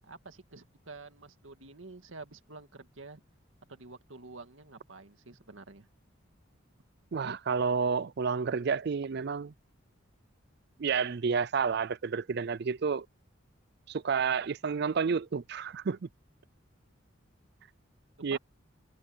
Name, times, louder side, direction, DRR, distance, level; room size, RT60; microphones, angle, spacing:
voice 1, 0.0-3.2 3.7-5.9 7.2-7.4 18.3-18.4, right 3 dB, 80° right, 2.0 m, -48 dB
voice 2, 7.1-9.5 10.8-13.1 13.9-16.1 18.2-18.4, right 5 dB, 55° right, 0.4 m, -30 dB
head